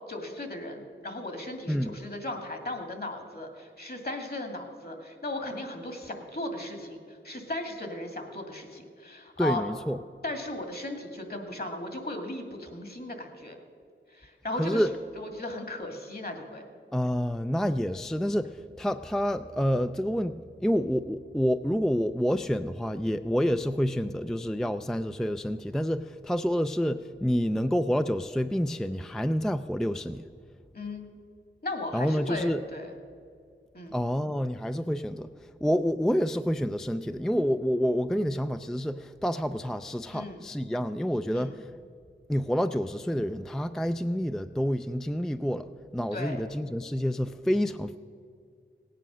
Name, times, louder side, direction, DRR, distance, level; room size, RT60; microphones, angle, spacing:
voice 1, 0.1-9.6 10.2-13.6 14.1-14.8 15.2-16.6 30.7-31.1 31.6-32.9 33.7-33.9 40.1-40.4 41.3-41.5 46.1-46.4, left 1 dB, 50° left, 4 dB, 2.2 m, -36 dB
voice 2, 1.7-2.0 9.4-10.0 14.6-14.9 16.9-30.2 31.9-32.6 33.9-41.7 42.3-45.7 45.9-48.0, equal, ahead, 10 dB, 0.4 m, -28 dB
17.5 x 9.1 x 6.2 m, 2.2 s
wide cardioid pair, 55°, 20 cm